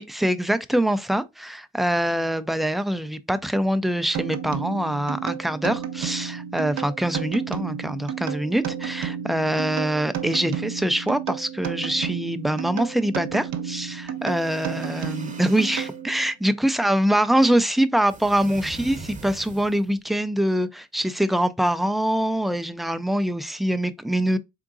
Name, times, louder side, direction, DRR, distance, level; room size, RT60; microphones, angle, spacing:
voice 1, 0.0-24.4, right 1 dB, ahead, 0.3 m, -24 dB
sound 1, 4.1-16.3, right 8 dB, 60° right, 0.7 m, -32 dB
sound 2, 14.2-16.0 18.1-20.0, right 3 dB, 25° right, 0.8 m, -42 dB
3.7 x 3.7 x 2.4 m
cardioid pair, 90°, 30 cm